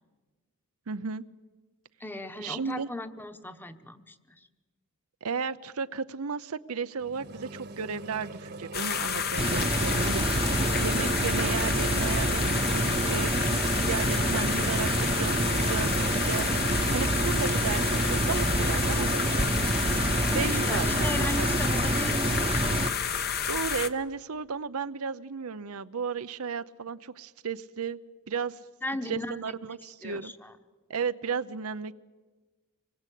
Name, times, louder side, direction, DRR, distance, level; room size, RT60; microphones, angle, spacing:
voice 1, 0.9-1.2 2.4-2.9 5.2-16.5 16.9-19.2 20.3-22.0 23.5-28.0 28.3-28.6 29.1-30.3 30.9-31.9, right 5 dB, 90° right, 12 dB, 0.7 m, -34 dB
voice 2, 2.0-4.2 20.3-22.5 28.8-29.3 30.0-30.5, left 1 dB, 10° left, 10 dB, 1.1 m, -36 dB
sound 1, 7.0-19.5, right 3 dB, 50° right, 1.3 m, -43 dB
sound 2, 8.7-23.9, left 7 dB, 45° left, 1.1 m, -30 dB
sound 3, 9.4-22.9, right 2 dB, 25° right, 0.9 m, -27 dB
26.0 x 21.0 x 8.4 m, 1.3 s
head